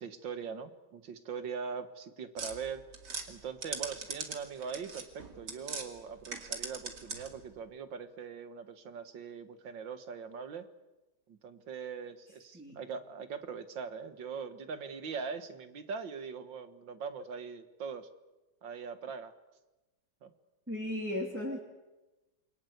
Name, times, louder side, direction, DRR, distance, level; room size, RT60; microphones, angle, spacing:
voice 1, 0.0-2.8 3.3-10.7 11.3-18.1 18.6-19.3 20.2-20.3, right 6 dB, 85° right, 10 dB, 2.3 m, -41 dB
sound 1, 2.4-5.9 6.2-7.4, right 4 dB, 65° right, 3.1 m, -41 dB
voice 2, 20.7-21.6, left 1 dB, 5° right, -2 dB, 2.9 m, -36 dB
28.0 x 23.0 x 8.1 m, 1.1 s
omnidirectional pair, 2.0 m